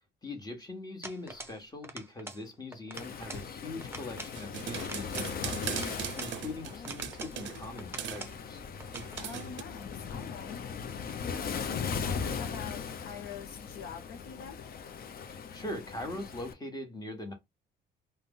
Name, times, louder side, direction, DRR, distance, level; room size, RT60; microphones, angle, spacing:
voice 1, 0.2-8.6 15.3-17.3, left 2 dB, 20° left, 1.2 m, -42 dB
sound 1, 1.0-1.6 1.8-2.4 2.7-3.5 3.8-4.4 4.8-6.4 6.8-7.4 7.8-8.4 8.8-9.3, right 2 dB, 10° right, 0.6 m, -45 dB
Waves surf, 2.9-16.5, left 6 dB, 50° left, 0.5 m, -39 dB
sound 2, 4.3-7.7 8.0-8.3 8.9-9.6, right 10 dB, 70° right, 0.5 m, -39 dB
voice 2, 6.6-7.0 9.2-10.6 11.2-14.6, left 6 dB, 90° left, 0.7 m, -45 dB
2.5 x 2.1 x 3.7 m
cardioid pair, 90°, 20 cm